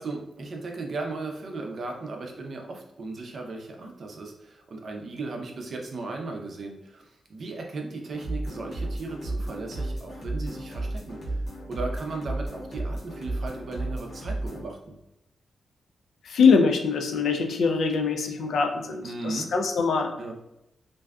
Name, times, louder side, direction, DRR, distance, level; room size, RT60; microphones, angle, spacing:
voice 1, 0.0-11.4 11.7-15.0 19.0-19.5 20.2-20.3, right 3 dB, 50° right, 0.4 m, -36 dB
sound 1, 8.1-14.6, right 2 dB, 50° left, 1.1 m, -33 dB
voice 2, 16.2-20.2, left 5 dB, 85° left, 0.3 m, -23 dB
2.5 x 2.2 x 2.3 m
wide cardioid pair, 155°, 0 cm